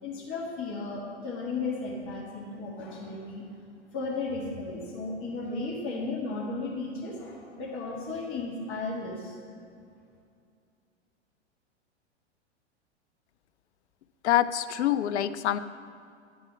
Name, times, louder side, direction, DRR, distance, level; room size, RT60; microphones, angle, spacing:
voice 1, 0.0-3.4 3.9-9.3, left 3 dB, 35° left, -4 dB, 1.4 m, -35 dB
voice 2, 14.2-15.6, left 12 dB, 70° left, 13 dB, 0.5 m, -25 dB
9.3 x 4.1 x 5.7 m, 2.4 s
figure-of-eight pair, 100°, 35 cm